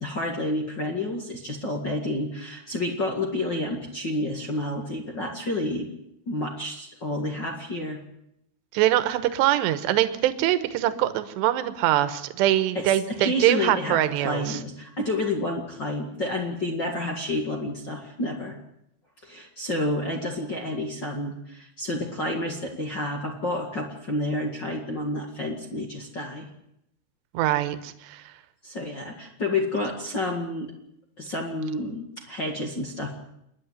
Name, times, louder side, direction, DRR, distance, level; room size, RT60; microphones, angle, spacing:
voice 1, 0.0-5.9 6.2-8.0 12.7-18.5 19.2-26.5 28.6-30.7 31.2-33.2, left 1 dB, 45° left, 1 dB, 1.4 m, -30 dB
voice 2, 8.7-14.6 27.3-28.2, right 13 dB, 75° right, 12 dB, 3.2 m, -23 dB
28.5 x 10.5 x 9.5 m, 0.80 s
omnidirectional pair, 5.2 m